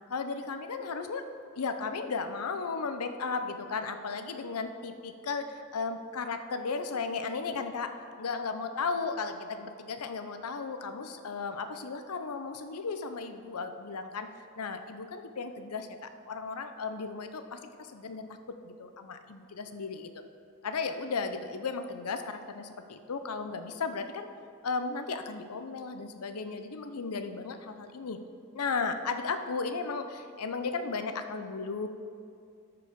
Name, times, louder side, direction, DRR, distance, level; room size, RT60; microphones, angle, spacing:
voice 1, 0.1-1.3 1.6-7.9 8.2-14.3 14.6-18.3 18.6-20.2 20.6-24.3 24.6-28.2 28.5-31.9, left 4 dB, 90° left, 8 dB, 0.7 m, -35 dB
13.0 x 4.9 x 5.1 m, 2.4 s
head